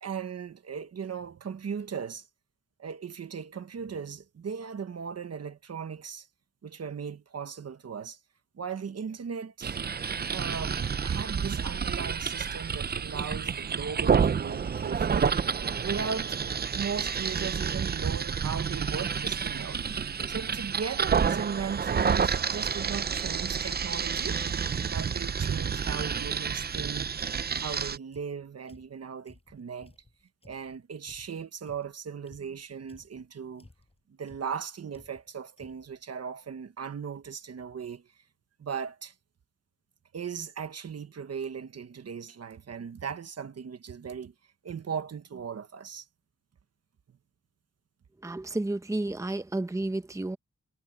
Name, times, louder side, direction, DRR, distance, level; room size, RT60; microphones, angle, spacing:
voice 1, 0.0-2.3 2.8-6.3 6.6-8.2 8.5-9.8 10.3-15.3 15.8-19.8 20.3-24.4 24.9-27.1 27.6-29.9 30.4-33.7 34.2-38.0 38.6-39.1 40.1-44.3 44.6-46.0, right 6 dB, 60° right, 1.2 m, -37 dB
sound 1, 9.6-28.0, right 6 dB, 35° right, 0.5 m, -29 dB
sound 2, 22.7-25.9 26.4-30.8 31.0-33.3 33.6-34.0 34.3-34.6 34.9-35.3 35.6-36.0, left 2 dB, 20° left, 5.6 m, -56 dB
voice 2, 48.2-50.4, right 2 dB, 10° right, 0.9 m, -31 dB
wide cardioid pair, 130°, 29 cm